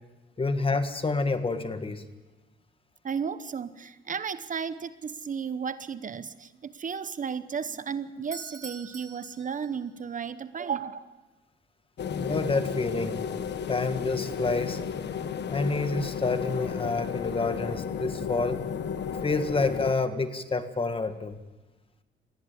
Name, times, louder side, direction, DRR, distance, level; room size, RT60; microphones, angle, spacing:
voice 1, 0.4-2.0 12.1-13.2 13.7-14.8 15.5-18.6 19.2-21.4, left 3 dB, 25° left, 9 dB, 1.7 m, -28 dB
voice 2, 3.0-11.2, right 6 dB, 40° right, 13 dB, 0.9 m, -34 dB
Doorbell, 8.2-10.1, right 4 dB, 15° right, 2.3 m, -45 dB
sound 1, 12.0-19.9, left 7 dB, 60° left, 1.3 m, -33 dB
20.0 x 16.0 x 8.6 m, 1.2 s
cardioid pair, 90°, 20 cm